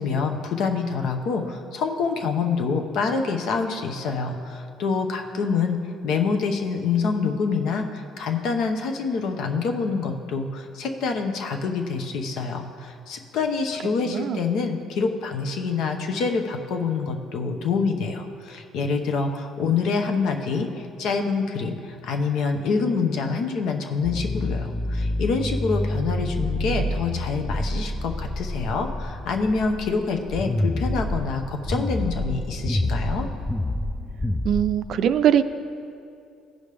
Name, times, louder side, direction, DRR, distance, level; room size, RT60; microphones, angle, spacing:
voice 1, 0.0-5.8 6.0-33.3, left 4 dB, 75° left, 5 dB, 0.8 m, -26 dB
voice 2, 14.1-14.4 34.4-35.4, right 9 dB, 65° right, 11 dB, 0.4 m, -21 dB
sound 1, 24.0-34.8, left 1 dB, 10° left, 0.4 m, -28 dB
15.0 x 5.2 x 3.3 m, 2.5 s
cardioid pair, 100°, 0 cm